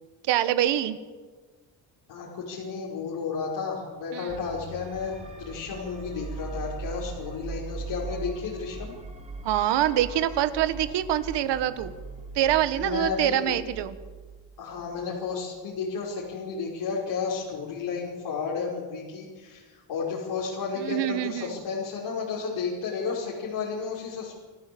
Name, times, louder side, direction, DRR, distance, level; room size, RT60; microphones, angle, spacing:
voice 1, 0.3-1.0 4.1-4.3 9.4-11.9 12.3-14.0 20.8-21.6, right 12 dB, 80° right, 12 dB, 1.6 m, -25 dB
voice 2, 2.1-8.9 12.8-13.5 14.6-24.3, left 5 dB, 80° left, -5 dB, 5.4 m, -32 dB
sound 1, 4.3-15.3, right 4 dB, 15° right, 3.5 m, -40 dB
29.0 x 13.0 x 8.0 m, 1.4 s
cardioid pair, 110°, 42 cm